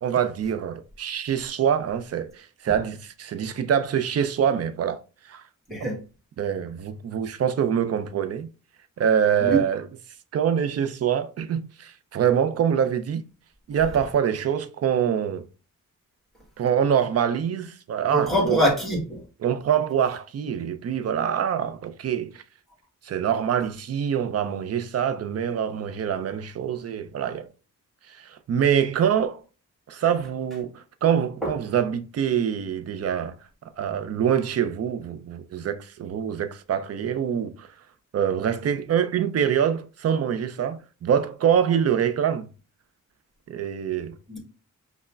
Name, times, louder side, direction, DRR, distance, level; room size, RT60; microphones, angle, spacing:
voice 1, 0.0-5.0 5.3-5.4 6.4-8.5 9.0-9.9 10.3-13.3 13.7-15.5 16.6-18.6 19.4-22.4 23.0-27.5 28.1-29.4 29.9-33.4 33.8-37.7 38.1-42.5 43.5-44.1, right 8 dB, 50° right, 0.4 m, -25 dB
voice 2, 18.1-19.2 31.4-31.5 44.3-44.4, right 1 dB, ahead, 1.3 m, -23 dB
5.4 x 2.1 x 2.4 m
wide cardioid pair, 135°, 33 cm